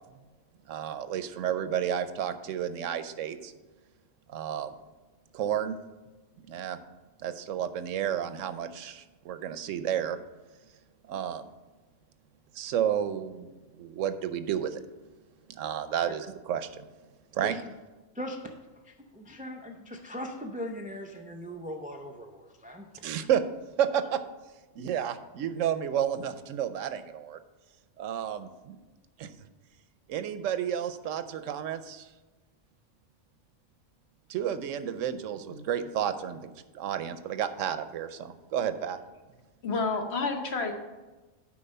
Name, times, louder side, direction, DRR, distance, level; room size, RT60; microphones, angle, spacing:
voice 1, 0.7-3.5 4.3-4.8 5.3-5.8 6.5-6.8 7.2-10.2 11.1-11.5 12.5-13.5 13.8-14.8 15.5-16.9 17.3-17.5 23.0-23.4 23.8-24.2 24.8-27.4 28.0-28.8 29.2-29.3 30.1-32.1 34.3-36.5 36.7-39.0, right 9 dB, 80° right, 11 dB, 1.0 m, -31 dB
voice 2, 18.1-18.5 18.8-22.9 23.1-23.3, equal, 15° right, 3 dB, 0.3 m, -39 dB
voice 3, 39.6-40.7, left 4 dB, 60° left, 4 dB, 1.2 m, -30 dB
8.6 x 5.1 x 5.4 m, 1.2 s
omnidirectional pair, 1.3 m